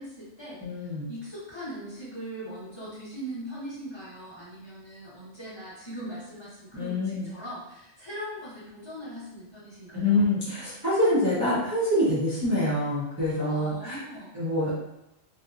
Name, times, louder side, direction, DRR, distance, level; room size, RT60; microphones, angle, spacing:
voice 1, 0.0-10.2 13.3-14.3, equal, 25° left, -11 dB, 0.9 m, -40 dB
voice 2, 0.6-1.1 6.7-7.2 9.9-14.0 14.3-14.7, left 1 dB, 20° right, -11 dB, 0.6 m, -25 dB
2.7 x 2.2 x 2.4 m, 0.87 s
omnidirectional pair, 1.2 m